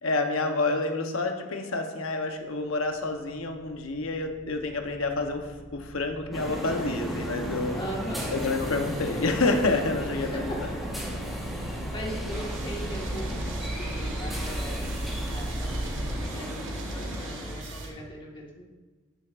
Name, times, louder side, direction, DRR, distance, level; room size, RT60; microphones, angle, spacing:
voice 1, 0.0-7.8 8.3-10.5, left 3 dB, 75° left, 4 dB, 0.9 m, -28 dB
sound 1, 2.8-16.1, right 1 dB, 30° right, 1.5 m, -37 dB
sound 2, 6.3-17.6, equal, ahead, 1.3 m, -35 dB
voice 2, 7.7-8.4 10.2-10.7 11.5-14.9 15.3-18.6, right 1 dB, 20° left, -3 dB, 1.6 m, -39 dB
sound 3, 12.3-17.9, right 1 dB, 55° right, 1.7 m, -38 dB
12.0 x 7.7 x 2.5 m, 1.3 s
head